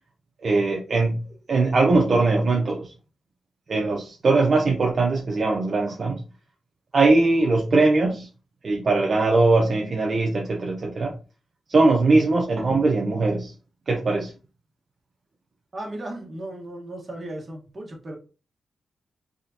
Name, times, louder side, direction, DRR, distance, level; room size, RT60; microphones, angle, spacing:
voice 1, 0.4-1.2 1.5-2.9 3.7-6.2 6.9-8.3 8.6-11.1 11.7-13.5 13.9-14.3, right 3 dB, 55° right, 0 dB, 0.7 m, -21 dB
voice 2, 15.7-18.2, right 1 dB, 40° right, 0 dB, 1.3 m, -36 dB
3.6 x 3.4 x 2.8 m, 0.33 s
cardioid pair, 70°, 0 cm